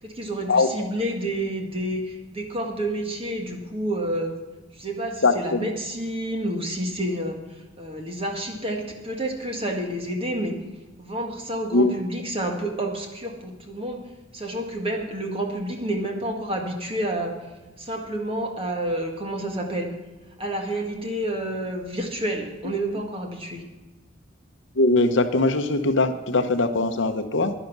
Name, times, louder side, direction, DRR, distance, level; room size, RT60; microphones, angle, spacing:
voice 1, 0.0-4.3 4.7-7.4 7.8-10.5 11.0-14.0 14.3-17.3 17.8-19.9 20.4-23.6, right 1 dB, 25° right, 2 dB, 1.7 m, -29 dB
voice 2, 5.2-5.7 11.7-12.0 24.8-27.5, left 2 dB, 60° left, 8 dB, 0.8 m, -21 dB
11.0 x 10.5 x 6.0 m, 1.2 s
head